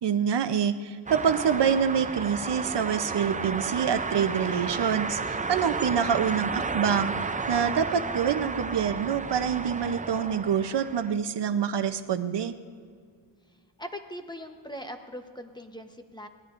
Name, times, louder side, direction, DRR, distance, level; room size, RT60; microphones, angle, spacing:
voice 1, 0.0-7.1 7.5-12.5, right 7 dB, 65° right, 10 dB, 0.7 m, -26 dB
sound 1, 1.1-11.1, right 4 dB, 20° right, 0.4 m, -32 dB
voice 2, 13.8-16.3, equal, 10° left, 5 dB, 0.9 m, -40 dB
24.0 x 17.5 x 2.5 m, 2.1 s
wide cardioid pair, 125°, 46 cm